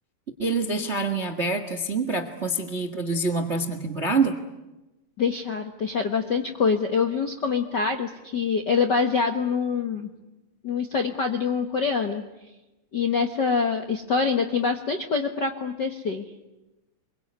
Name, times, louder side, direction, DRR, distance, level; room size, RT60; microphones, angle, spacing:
voice 1, 0.4-4.4, right 3 dB, 40° right, 9 dB, 1.0 m, -26 dB
voice 2, 5.2-10.1 10.6-12.2 12.9-16.3, left 5 dB, 55° left, 5 dB, 1.2 m, -25 dB
26.5 x 23.0 x 9.6 m, 1.0 s
omnidirectional pair, 4.1 m